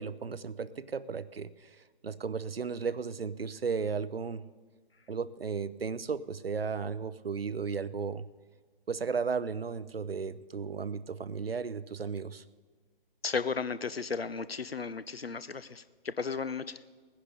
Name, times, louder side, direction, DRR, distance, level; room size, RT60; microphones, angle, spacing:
voice 1, 0.0-4.5 5.1-8.3 8.9-12.4, right 5 dB, 80° right, 17 dB, 0.6 m, -35 dB
voice 2, 13.2-16.8, left 5 dB, 85° left, 15 dB, 0.7 m, -34 dB
18.0 x 10.0 x 5.1 m, 1.4 s
figure-of-eight pair, 140°, 29 cm